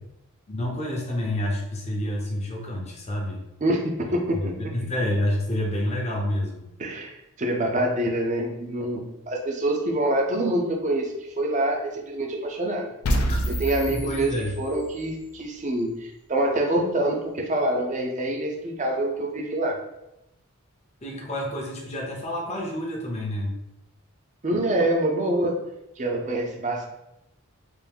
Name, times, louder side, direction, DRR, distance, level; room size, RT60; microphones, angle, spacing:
voice 1, 0.5-3.4 4.4-6.6 13.3-13.4 13.9-14.5 21.0-23.5, left 1 dB, 30° left, -1 dB, 0.7 m, -28 dB
voice 2, 3.6-4.6 6.8-12.9 13.5-19.8 24.4-25.6 26.0-26.9, right 1 dB, 35° right, 2 dB, 0.5 m, -26 dB
sound 1, 13.0-15.1, equal, 75° left, 0.5 m, -27 dB
3.5 x 2.5 x 3.5 m, 0.88 s
head